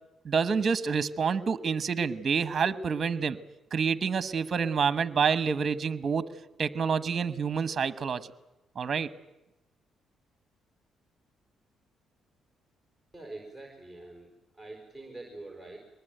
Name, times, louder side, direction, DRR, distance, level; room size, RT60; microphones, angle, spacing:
voice 1, 0.2-3.4 3.7-6.3 6.6-8.3 8.8-9.1, right 6 dB, 40° right, 14 dB, 1.1 m, -28 dB
voice 2, 13.1-15.8, right 2 dB, 5° left, 1 dB, 4.7 m, -45 dB
23.5 x 20.5 x 9.1 m, 0.97 s
cardioid pair, 90°, 0 cm